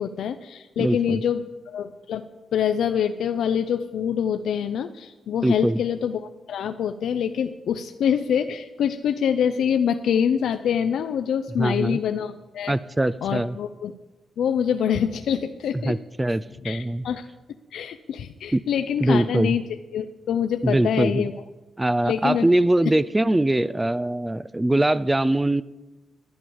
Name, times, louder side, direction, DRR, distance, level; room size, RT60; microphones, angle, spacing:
voice 1, 0.0-2.2 2.5-12.7 13.2-13.9 14.4-16.0 16.6-17.3 17.7-19.6 19.9-21.4 22.0-22.5, left 8 dB, 85° left, 8 dB, 0.6 m, -25 dB
voice 2, 0.8-1.2 5.4-5.8 11.6-12.0 12.7-13.6 15.8-17.0 18.5-18.6 19.0-19.5 20.6-21.2 21.8-25.6, right 1 dB, 10° right, 17 dB, 0.3 m, -22 dB
11.0 x 10.0 x 7.1 m, 1.1 s
wide cardioid pair, 145°, 0 cm